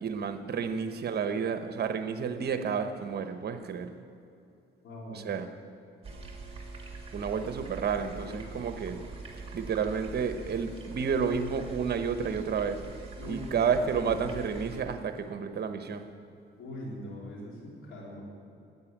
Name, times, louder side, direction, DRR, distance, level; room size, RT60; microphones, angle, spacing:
voice 1, 0.0-3.9 5.1-5.5 7.1-9.0 9.5-12.8 13.3-16.0, right 6 dB, 55° right, 8 dB, 1.0 m, -31 dB
voice 2, 4.8-5.2 8.2-8.4 13.2-14.3 16.6-18.2, left 1 dB, 80° left, -3 dB, 3.6 m, -42 dB
sound 1, 6.0-14.8, right 3 dB, 30° right, 2.2 m, -43 dB
9.6 x 8.8 x 9.2 m, 2.6 s
cardioid pair, 90°, 20 cm